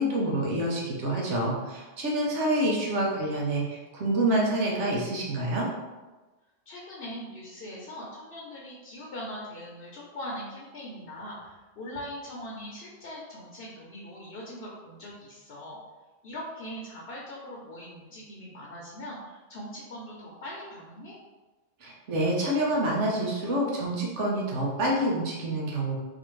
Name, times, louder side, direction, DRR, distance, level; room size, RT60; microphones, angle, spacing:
voice 1, 0.0-5.7 21.8-26.0, right 1 dB, 85° right, -3 dB, 1.1 m, -27 dB
voice 2, 6.7-15.8 16.2-21.1, equal, 60° left, -4 dB, 1.0 m, -41 dB
4.1 x 2.8 x 3.1 m, 1.2 s
omnidirectional pair, 1.2 m